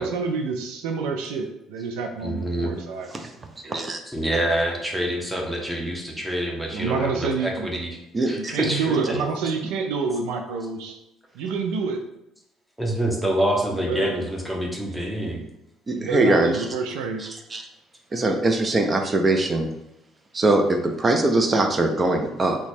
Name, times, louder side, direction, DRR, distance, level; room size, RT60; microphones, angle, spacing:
voice 1, 0.0-3.1 6.7-7.7 8.3-11.0 11.3-12.0 13.8-14.3 14.8-14.9 15.9-17.2, right 4 dB, 85° right, 4 dB, 0.4 m, -28 dB
voice 2, 2.2-2.7 4.0-8.0 8.3-9.2 12.8-15.4, right 1 dB, 5° right, -1 dB, 0.8 m, -26 dB
voice 3, 3.6-4.0 8.1-8.5 15.9-16.5 17.5-17.6 18.1-19.7 20.3-22.6, right 2 dB, 30° right, 5 dB, 0.5 m, -21 dB
2.9 x 2.3 x 4.2 m, 0.86 s
supercardioid pair, 90°, 0 cm